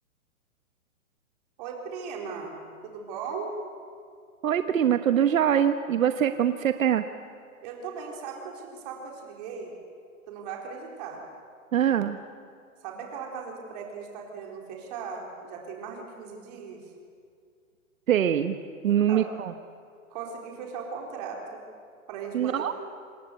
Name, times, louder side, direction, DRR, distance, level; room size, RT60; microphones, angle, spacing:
voice 1, 1.6-2.6 2.8-3.6 7.6-9.7 10.3-11.2 12.8-16.8 18.8-19.3 20.1-21.6 22.1-22.7, right 5 dB, 30° right, 0 dB, 4.3 m, -38 dB
voice 2, 4.4-7.0 11.7-12.2 18.1-18.6 18.8-19.5 22.3-22.7, right 9 dB, 70° right, 8 dB, 1.2 m, -23 dB
27.0 x 19.5 x 8.3 m, 2.3 s
hypercardioid pair, 170°, 42 cm